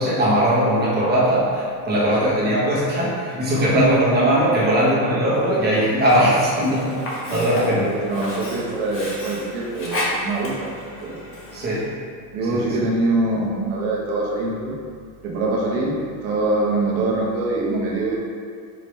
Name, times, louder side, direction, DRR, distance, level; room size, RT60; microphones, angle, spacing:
voice 1, 0.0-6.9 7.3-7.9 11.5-11.9 12.5-12.7, right 1 dB, 20° right, -7 dB, 1.2 m, -19 dB
voice 2, 3.5-3.9 6.8-10.7 11.0-11.2 12.3-14.8 15.2-18.2, right 2 dB, 75° right, -3 dB, 1.2 m, -24 dB
Sink (filling or washing), 6.0-11.9, left 1 dB, 30° left, 0.8 m, -32 dB
5.1 x 2.8 x 3.2 m, 2.2 s
supercardioid pair, 145°, 44 cm